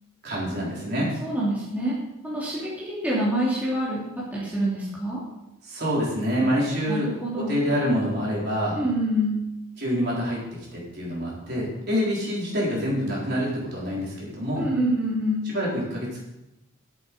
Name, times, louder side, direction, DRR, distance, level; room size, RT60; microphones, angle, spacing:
voice 1, 0.2-1.1 5.6-7.1 7.4-8.8 9.8-10.4 10.7-14.7 15.4-16.2, equal, 50° right, -5 dB, 4.1 m, -26 dB
voice 2, 1.0-2.0 2.2-4.1 4.3-5.2 6.9-7.6 8.8-9.4 14.6-15.5, equal, 5° right, -8 dB, 2.9 m, -26 dB
11.0 x 8.1 x 5.3 m, 0.93 s
head